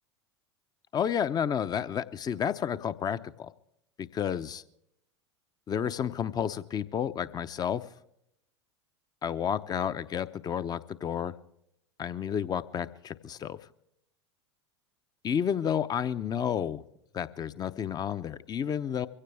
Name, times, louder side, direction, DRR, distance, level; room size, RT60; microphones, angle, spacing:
voice 1, 0.9-3.5 4.0-4.6 5.7-7.9 9.2-11.3 12.0-13.6 15.2-16.8 17.1-19.1, left 8 dB, 25° left, 14 dB, 0.8 m, -31 dB
23.0 x 16.5 x 3.5 m, 0.77 s
figure-of-eight pair, 85°, 15 cm